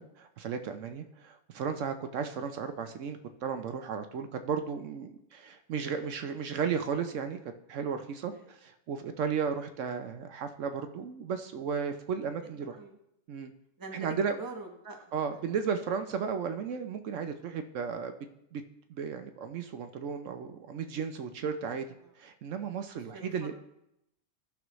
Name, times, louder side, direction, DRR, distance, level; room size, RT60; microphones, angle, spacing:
voice 1, 0.0-7.4 7.7-12.8 13.3-13.5 13.9-14.3 15.1-18.1 18.5-18.6 18.9-21.9 22.2-23.5, right 6 dB, 70° right, 7 dB, 1.0 m, -34 dB
voice 2, 12.6-13.0 13.8-15.0 22.0-22.1 22.9-23.5, right 3 dB, 20° right, 3 dB, 0.9 m, -45 dB
15.0 x 6.2 x 3.1 m, 0.82 s
omnidirectional pair, 1.4 m